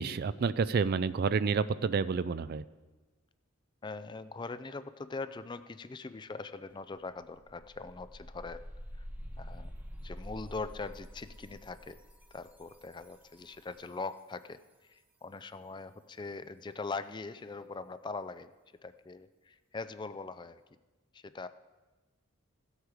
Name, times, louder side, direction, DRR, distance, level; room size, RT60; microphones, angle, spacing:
voice 1, 0.0-2.6, right 5 dB, 50° right, 16 dB, 0.4 m, -29 dB
voice 2, 3.8-8.6 9.0-9.1 9.4-9.7 10.0-12.0 12.3-18.5 18.8-20.6 21.1-21.5, left 3 dB, 20° left, 13 dB, 0.4 m, -42 dB
sound 1, 6.7-6.8 7.1-13.9, equal, 10° right, 1.1 m, -47 dB
15.5 x 8.1 x 4.8 m, 1.2 s
head